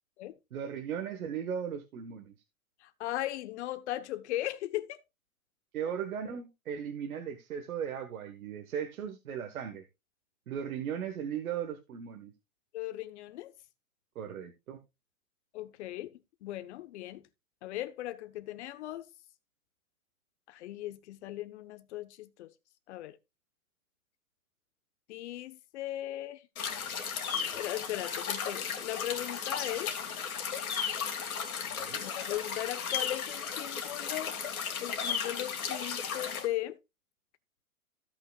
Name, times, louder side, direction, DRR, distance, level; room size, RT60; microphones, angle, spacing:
voice 1, 0.5-2.3 5.7-9.8 10.5-12.3 14.1-14.8 31.8-32.0, right 8 dB, 70° right, 1.6 m, -37 dB
voice 2, 2.8-5.0 12.7-13.5 15.5-17.3 17.6-19.1 20.5-22.5 22.9-23.2 25.1-26.4 27.5-29.9 31.9-34.4 34.8-36.8, left 14 dB, 50° left, 1.1 m, -38 dB
sound 1, 26.6-36.5, left 7 dB, 70° left, 2.4 m, -35 dB
16.0 x 5.8 x 2.4 m
hypercardioid pair, 130°, 44 cm